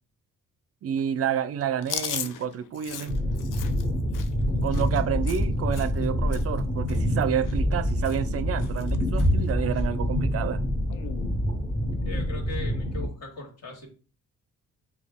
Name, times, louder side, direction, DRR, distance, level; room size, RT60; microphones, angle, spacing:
voice 1, 0.8-3.2 4.6-10.6, right 8 dB, 45° right, 0.4 m, -29 dB
Chewing mastication, 1.8-6.1 6.3-6.6 6.9-7.8 8.0-8.3 8.6-9.3 9.7-9.8 10.9-11.3, left 9 dB, 75° left, 0.5 m, -38 dB
sound 1, 3.1-13.1, equal, 20° left, 1.7 m, -26 dB
voice 2, 12.0-13.9, left 2 dB, 50° left, 1.9 m, -39 dB
6.0 x 2.3 x 3.5 m
cardioid pair, 105°, 32 cm